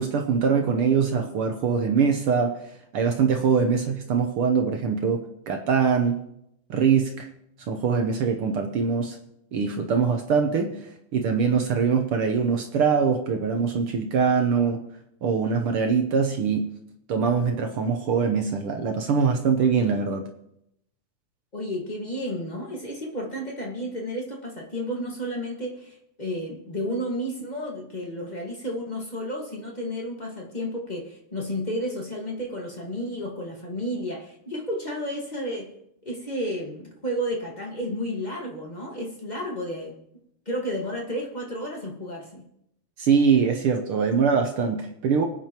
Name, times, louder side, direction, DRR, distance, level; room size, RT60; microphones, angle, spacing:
voice 1, 0.0-6.2 6.7-7.3 7.7-9.2 9.5-14.8 15.2-16.8 17.1-20.2 43.0-45.2, right 6 dB, 75° right, 4 dB, 1.3 m, -23 dB
voice 2, 21.5-35.7 36.0-39.9 40.4-42.4, equal, 25° left, -1 dB, 0.8 m, -32 dB
24.5 x 9.3 x 2.9 m, 0.78 s
omnidirectional pair, 3.5 m